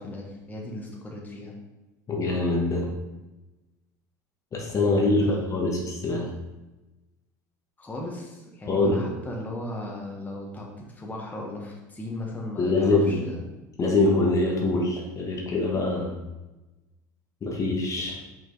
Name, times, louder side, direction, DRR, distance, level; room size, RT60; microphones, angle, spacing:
voice 1, 0.0-1.5 4.9-5.5 7.8-13.4, left 1 dB, 15° left, -2 dB, 1.3 m, -36 dB
voice 2, 2.1-2.9 4.5-6.3 8.7-9.0 12.6-13.2 13.8-16.2 17.4-18.2, left 2 dB, 35° left, -1 dB, 1.3 m, -24 dB
5.4 x 4.5 x 4.0 m, 1.1 s
hypercardioid pair, 85°, 10 cm